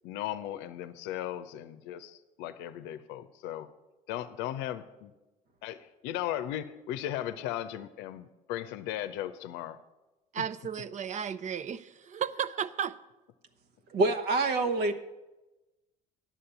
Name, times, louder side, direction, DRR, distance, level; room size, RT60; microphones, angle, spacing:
voice 1, 0.0-3.7 4.1-5.1 5.6-9.8 10.4-10.5, left 12 dB, 70° left, 12 dB, 0.7 m, -37 dB
voice 2, 10.3-13.0, right 8 dB, 40° right, 14 dB, 0.6 m, -34 dB
voice 3, 13.9-14.9, right 3 dB, 60° right, 5 dB, 1.1 m, -26 dB
10.0 x 7.5 x 6.9 m, 1.1 s
hypercardioid pair, 60°, 18 cm